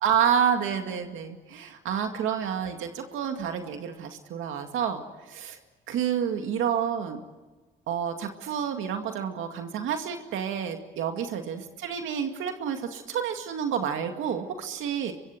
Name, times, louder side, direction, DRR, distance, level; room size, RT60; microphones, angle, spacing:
voice 1, 0.0-5.6 5.9-7.2 7.9-15.1, right 8 dB, 85° right, 5 dB, 2.2 m, -29 dB
24.0 x 24.0 x 9.0 m, 1.3 s
cardioid pair, 90°, 20 cm